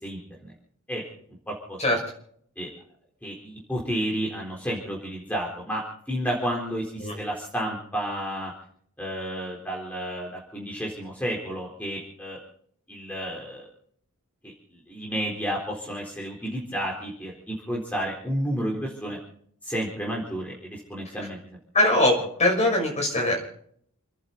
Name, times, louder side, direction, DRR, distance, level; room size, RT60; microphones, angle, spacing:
voice 1, 0.0-0.5 0.9-1.0 1.5-1.8 2.6-2.7 3.2-5.8 6.1-8.5 9.0-12.4 12.9-13.7 14.4-14.5 14.9-19.2 19.6-21.4, equal, 5° left, -2 dB, 4.0 m, -31 dB
voice 2, 21.7-23.4, left 1 dB, 30° left, 1 dB, 6.2 m, -22 dB
29.5 x 11.0 x 4.1 m, 0.63 s
head